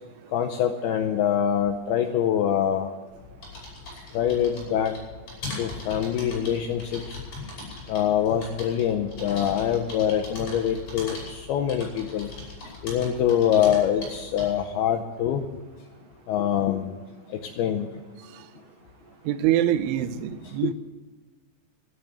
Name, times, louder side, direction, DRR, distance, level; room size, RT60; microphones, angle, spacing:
voice 1, 0.3-2.9 4.1-4.9 5.6-7.2 7.9-12.3 12.8-15.4 16.3-16.9 17.6-17.9 20.6-20.7, left 9 dB, 90° left, 4 dB, 2.2 m, -24 dB
sound 1, 3.1-14.7, left 3 dB, 35° left, 6.8 m, -40 dB
voice 2, 19.3-20.7, right 12 dB, 85° right, 12 dB, 3.1 m, -24 dB
13.0 x 11.0 x 8.0 m, 1.4 s
omnidirectional pair, 5.5 m